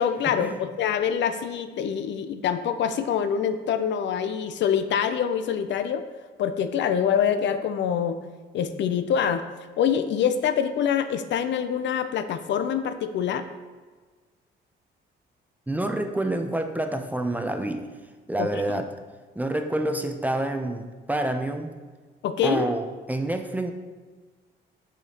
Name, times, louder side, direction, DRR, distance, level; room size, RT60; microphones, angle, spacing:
voice 1, 0.0-6.0 6.4-8.2 8.5-9.4 9.8-13.5 18.4-18.5 22.2-22.7, left 8 dB, 65° left, 10 dB, 0.4 m, -25 dB
voice 2, 15.7-17.9 18.3-18.9 19.4-21.7 22.4-23.7, right 1 dB, 10° right, 5 dB, 0.5 m, -27 dB
6.7 x 5.0 x 2.8 m, 1.4 s
cardioid pair, 90°, 20 cm